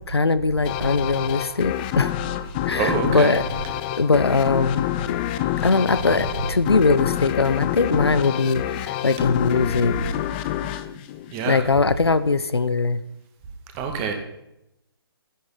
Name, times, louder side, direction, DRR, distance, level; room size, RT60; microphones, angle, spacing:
voice 1, 0.1-2.1 2.7-3.4 4.0-4.8 5.6-10.0 11.5-13.0, left 4 dB, 80° left, 14 dB, 0.9 m, -21 dB
sound 1, 0.7-11.9, left 12 dB, 25° left, 0.6 m, -27 dB
voice 2, 2.8-3.3 6.0-6.4 9.7-9.8 11.3-11.7 13.7-14.1, right 6 dB, 25° right, 4 dB, 2.0 m, -27 dB
12.5 x 10.5 x 5.8 m, 0.85 s
figure-of-eight pair, 140°, 13 cm